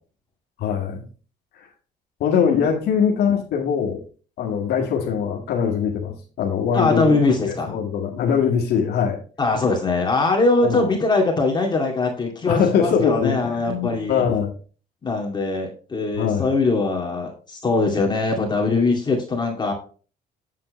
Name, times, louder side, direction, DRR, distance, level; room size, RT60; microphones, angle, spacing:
voice 1, 0.6-1.1 1.5-1.7 2.2-4.0 4.4-7.2 7.5-9.2 10.6-10.9 12.5-14.5 16.2-16.5, left 7 dB, 75° left, 0 dB, 1.8 m, -22 dB
voice 2, 6.7-7.8 9.4-14.2 15.0-19.7, left 3 dB, 25° left, 1 dB, 2.2 m, -21 dB
8.4 x 7.5 x 3.1 m, 0.37 s
cardioid pair, 110°, 17 cm